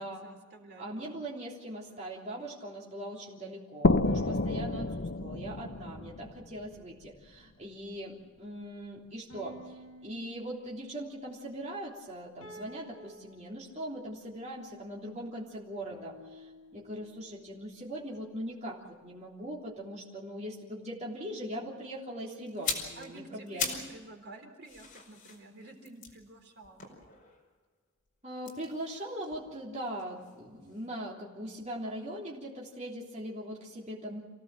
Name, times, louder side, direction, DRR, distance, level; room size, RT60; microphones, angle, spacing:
voice 1, 0.0-1.2 23.0-26.9, right 2 dB, 50° right, 3 dB, 3.7 m, -50 dB
voice 2, 0.8-23.8 28.2-34.2, right 1 dB, 30° right, -4 dB, 3.3 m, -41 dB
sound 1, 1.9-3.1 4.1-6.1 9.3-13.8 15.9-17.7, right 1 dB, 75° left, 5.2 m, -51 dB
sound 2, 3.8-7.4, left 2 dB, 55° left, 0.8 m, -30 dB
sound 3, 22.5-24.0 24.3-27.5 28.4-30.4 30.7-30.9, left 5 dB, 40° left, 5.1 m, -40 dB
27.5 x 17.5 x 7.6 m, 1.4 s
head